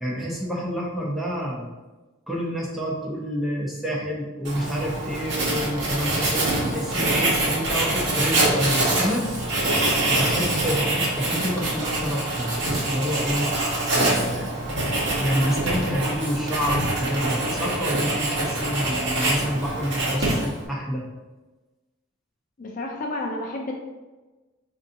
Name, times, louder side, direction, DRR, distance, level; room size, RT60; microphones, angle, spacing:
voice 1, 0.0-1.7 2.3-9.3 10.1-13.5 13.9-14.5 15.2-21.1, equal, ahead, -4 dB, 0.6 m, -28 dB
Writing, 4.4-20.7, right 2 dB, 60° right, 1.0 m, -25 dB
voice 2, 22.6-23.7, left 2 dB, 40° left, 1 dB, 0.4 m, -30 dB
4.6 x 2.6 x 2.6 m, 1.2 s
head